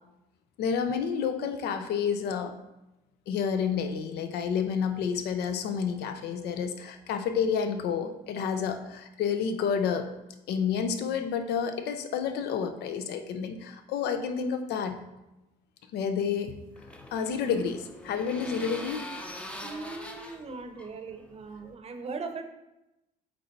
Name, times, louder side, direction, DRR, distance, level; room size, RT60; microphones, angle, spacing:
voice 1, 0.6-2.5 3.3-10.1 10.5-15.0 15.9-16.7 17.1-19.1, left 6 dB, 75° left, 8 dB, 0.7 m, -30 dB
sound 1, 16.2-21.7, left 1 dB, 5° left, 0.6 m, -43 dB
voice 2, 19.6-22.4, right 4 dB, 35° right, 6 dB, 0.8 m, -39 dB
8.2 x 3.2 x 4.0 m, 0.94 s
cardioid pair, 110°, 17 cm